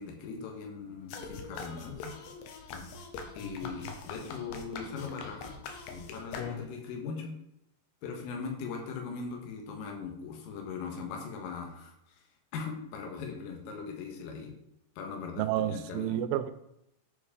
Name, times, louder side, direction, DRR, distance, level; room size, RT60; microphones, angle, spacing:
voice 1, 0.0-2.1 3.3-5.5 6.1-7.4 8.0-12.3 12.5-14.6 15.0-16.2, left 5 dB, 90° left, 1 dB, 4.2 m, -40 dB
sound 1, 1.1-6.9, left 5 dB, 75° left, 2.9 m, -42 dB
voice 2, 15.4-16.5, right 12 dB, 80° right, 10 dB, 3.0 m, -30 dB
12.5 x 5.1 x 5.0 m, 0.83 s
omnidirectional pair, 5.7 m